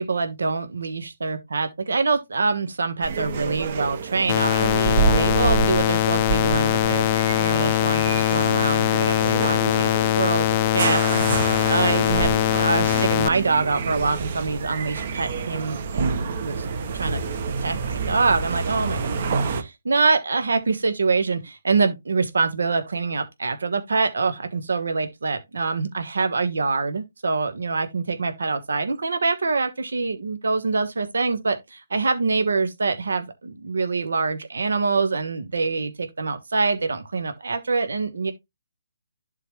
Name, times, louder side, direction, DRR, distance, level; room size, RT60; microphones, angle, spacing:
voice 1, 0.0-16.7 16.9-17.2 17.6-38.3, right 4 dB, 70° right, 1.2 m, -25 dB
sound 1, 3.0-19.6, right 5 dB, 45° right, 1.2 m, -28 dB
sound 2, 4.3-13.3, left 14 dB, 30° left, 0.5 m, -21 dB
11.0 x 3.9 x 3.1 m
figure-of-eight pair, 140°, 0 cm